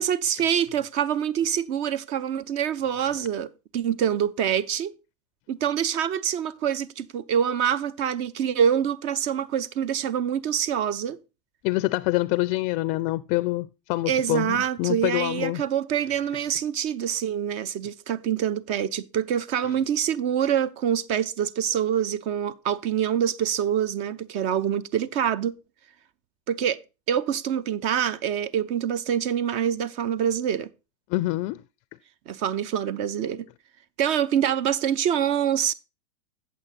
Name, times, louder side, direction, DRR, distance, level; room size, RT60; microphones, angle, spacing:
voice 1, 0.0-4.9 5.5-11.2 14.1-25.5 26.5-26.8 27.1-30.7 32.3-33.4 34.0-35.7, right 9 dB, 45° right, 0.6 m, -25 dB
voice 2, 11.6-15.6 31.1-31.6, left 19 dB, 45° left, 0.4 m, -26 dB
8.3 x 7.8 x 4.1 m
hypercardioid pair, 110°, 16 cm